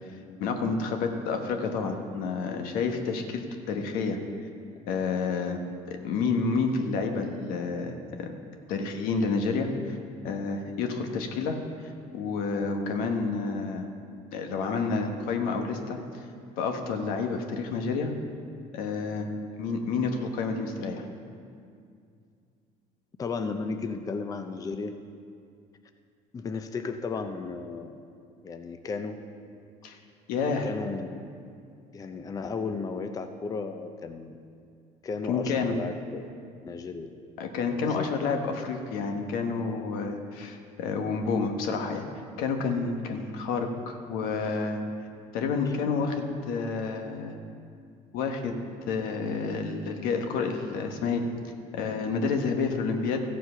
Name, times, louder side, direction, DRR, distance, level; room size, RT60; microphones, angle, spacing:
voice 1, 0.4-4.2 4.9-5.6 5.9-8.3 8.7-10.0 10.2-11.6 11.8-13.9 14.3-16.2 16.6-18.1 18.7-19.3 19.6-21.0 29.8-30.0 30.3-30.7 35.3-35.8 37.4-42.0 42.4-44.8 45.3-47.4 48.1-48.5 48.9-51.2 51.7-53.2, left 4 dB, 85° left, 4 dB, 1.2 m, -29 dB
voice 2, 23.2-24.9 26.3-28.0 28.4-29.2 30.6-31.2 31.9-34.3 35.0-36.4 36.6-37.1 37.7-38.1 45.7-45.8, left 4 dB, 25° left, 7 dB, 0.5 m, -34 dB
14.0 x 7.5 x 5.6 m, 2.3 s
cardioid pair, 130°, 15 cm